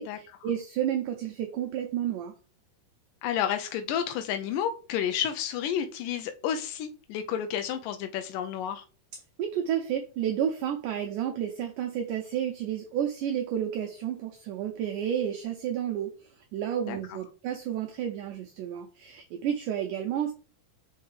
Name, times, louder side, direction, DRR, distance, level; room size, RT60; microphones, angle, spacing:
voice 1, 0.0-2.3 9.4-16.1 16.5-20.3, right 9 dB, 75° right, 3 dB, 2.0 m, -31 dB
voice 2, 3.2-8.8 16.8-17.0, left 9 dB, 75° left, 7 dB, 2.1 m, -31 dB
5.5 x 5.5 x 3.3 m, 0.37 s
omnidirectional pair, 4.3 m